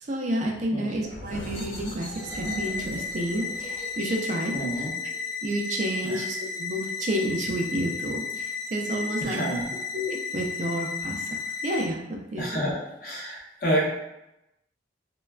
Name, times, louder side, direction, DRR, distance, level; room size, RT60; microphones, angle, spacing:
voice 1, 0.0-4.9 5.4-9.4 9.9-11.3 11.6-12.7, right 1 dB, 40° right, 1 dB, 0.4 m, -30 dB
voice 2, 0.7-1.1 4.5-4.9 6.0-6.2 9.2-9.7 12.4-13.8, right 1 dB, 50° left, -4 dB, 0.7 m, -29 dB
sound 1, 1.0-6.4, left 1 dB, 75° left, 0.9 m, -42 dB
sound 2, 2.2-11.8, left 5 dB, ahead, 0.6 m, -34 dB
3.2 x 2.2 x 2.3 m, 0.90 s
head